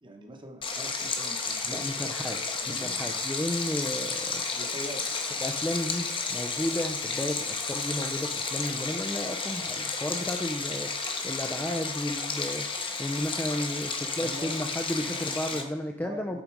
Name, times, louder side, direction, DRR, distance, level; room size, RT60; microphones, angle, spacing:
voice 1, 0.0-3.0 4.5-5.1 14.2-14.5 15.0-15.2 15.5-15.7 16.0-16.4, right 1 dB, 20° right, 3 dB, 1.0 m, -43 dB
Stream, 0.6-15.6, left 4 dB, 25° left, 0.8 m, -32 dB
voice 2, 1.7-2.4 2.7-4.4 5.4-10.9 11.2-12.7 13.0-16.4, left 1 dB, 10° left, 3 dB, 0.4 m, -33 dB
8.7 x 3.9 x 4.6 m, 0.90 s
head